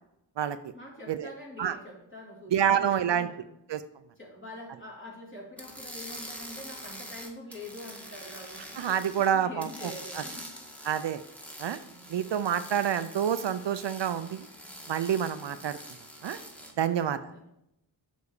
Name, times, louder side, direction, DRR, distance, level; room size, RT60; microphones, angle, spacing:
voice 1, 0.7-3.5 4.2-10.5 11.7-12.1 14.7-15.6 16.8-17.4, left 1 dB, 25° left, -4 dB, 3.4 m, -46 dB
voice 2, 2.5-3.3 3.7-3.8 8.8-10.2 10.8-11.2 11.6-11.8 12.1-14.5 14.9-15.8 16.2-16.4 16.8-17.2, right 9 dB, 65° right, 12 dB, 0.6 m, -28 dB
sound 1, 5.6-9.3 9.6-16.7, equal, 5° left, 1.8 m, -45 dB
6.9 x 4.2 x 6.5 m, 0.79 s
cardioid pair, 45°, 46 cm